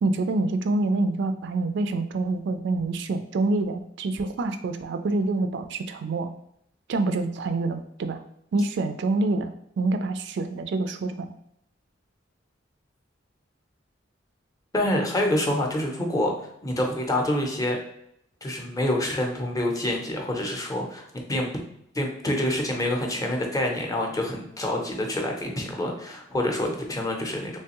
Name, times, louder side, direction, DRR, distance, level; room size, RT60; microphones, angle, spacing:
voice 1, 0.0-6.3 6.9-8.2 8.5-11.3, right 2 dB, 65° right, 8 dB, 0.3 m, -26 dB
voice 2, 14.7-16.3 16.6-17.8 18.4-21.5 21.9-27.6, left 1 dB, 20° left, 1 dB, 0.6 m, -27 dB
3.4 x 3.1 x 2.9 m, 0.73 s
head